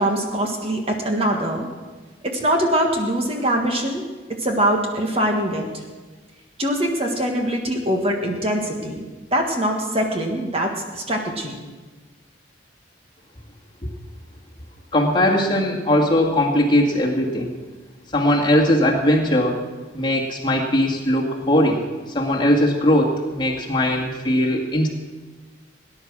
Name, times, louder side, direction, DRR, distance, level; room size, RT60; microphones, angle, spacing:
voice 1, 0.0-1.7 2.2-4.0 4.4-5.8 6.6-11.6, right 1 dB, 30° right, 2 dB, 1.5 m, -23 dB
voice 2, 14.9-17.5 18.1-19.6 19.9-21.8 22.1-24.9, left 1 dB, 25° left, -2 dB, 2.2 m, -19 dB
18.5 x 10.5 x 6.2 m, 1.3 s
head